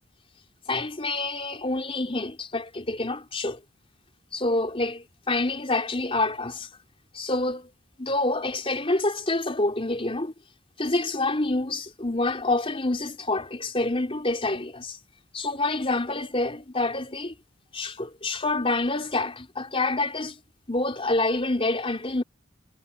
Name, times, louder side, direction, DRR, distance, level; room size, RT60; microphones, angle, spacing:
voice 1, 0.7-3.6 4.3-6.7 7.1-7.7 8.0-10.3 10.8-15.0 15.3-17.3 17.7-20.4 20.7-22.2, left 2 dB, 30° left, 3.6 m, -27 dB
head